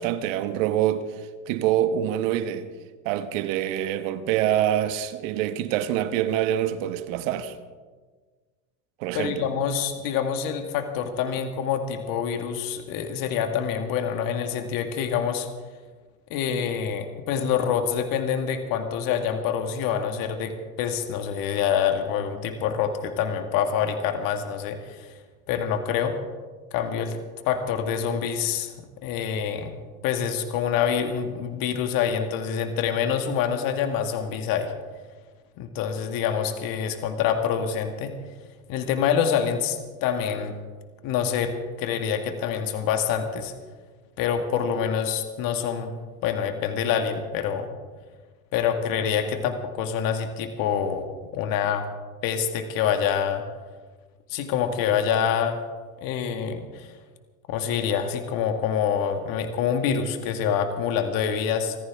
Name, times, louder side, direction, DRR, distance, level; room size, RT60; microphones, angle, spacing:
voice 1, 0.0-2.7 3.0-7.6 9.0-9.5, right 11 dB, 65° right, 1.4 m, -25 dB
voice 2, 9.1-15.5 16.3-25.1 25.5-26.2 26.7-27.2 27.4-28.7 29.0-29.7 30.0-34.7 35.6-38.1 38.7-40.6 41.0-43.5 44.2-45.9 46.2-47.7 48.5-51.1 51.3-51.9 52.2-53.4 54.3-55.6 56.0-56.9 57.5-61.8, left 8 dB, 50° left, 1.9 m, -26 dB
25.5 x 14.5 x 3.6 m
hypercardioid pair, 95°, 42 cm